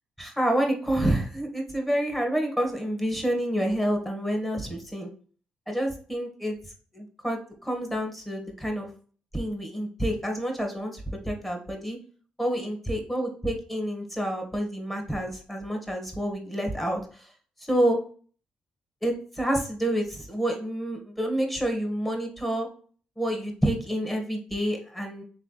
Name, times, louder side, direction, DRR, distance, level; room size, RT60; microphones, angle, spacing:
voice 1, 0.2-5.1 5.7-6.6 6.9-8.9 9.3-12.0 12.4-17.0 17.6-18.0 19.0-22.7 23.2-25.2, right 1 dB, 5° left, 2 dB, 1.4 m, -28 dB
3.5 x 3.3 x 3.9 m, 0.42 s
cardioid pair, 75°, 3 cm